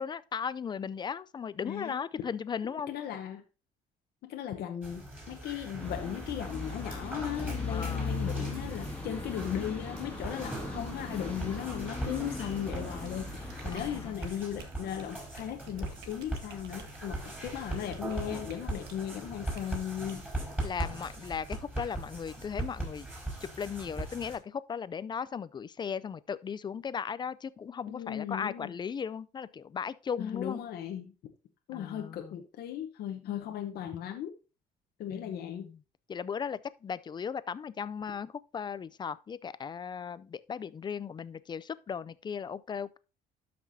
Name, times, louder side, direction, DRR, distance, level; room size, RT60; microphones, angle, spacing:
voice 1, 0.0-2.9 7.7-8.1 13.7-14.2 20.6-23.1 23.4-30.6 31.7-32.4 35.1-35.8 36.1-43.0, left 7 dB, 25° left, 0.4 m, -37 dB
voice 2, 1.6-2.0 2.9-3.4 4.2-20.3 27.9-28.7 30.2-31.1 31.7-34.3 35.0-35.7, left 10 dB, 70° left, 0.9 m, -37 dB
sound 1, 4.8-24.4, right 1 dB, 10° right, 5.0 m, -40 dB
sound 2, 5.8-14.1, left 3 dB, 10° left, 2.1 m, -38 dB
sound 3, 12.7-19.1 19.5-19.7 20.1-20.3, right 6 dB, 75° right, 1.5 m, -52 dB
12.5 x 6.0 x 2.7 m
cardioid pair, 110°, 17 cm